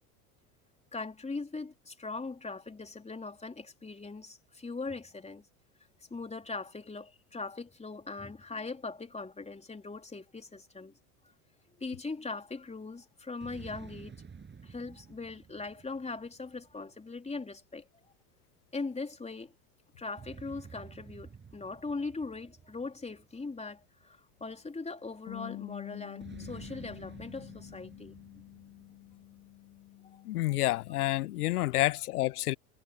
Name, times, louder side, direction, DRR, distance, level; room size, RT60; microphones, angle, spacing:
voice 1, 0.9-5.4 6.1-10.9 11.8-14.2 14.6-17.8 18.7-19.5 20.0-28.2 30.1-30.2 31.7-31.9, left 3 dB, 15° left, 3.6 m, -40 dB
sound 1, 13.4-17.0 20.2-23.8 26.2-29.6, right 6 dB, 25° right, 7.1 m, -51 dB
Bass guitar, 25.3-31.5, left 18 dB, 50° left, 2.7 m, -47 dB
voice 2, 30.3-32.6, left 17 dB, 75° left, 0.6 m, -29 dB
hypercardioid pair, 80°, 45 cm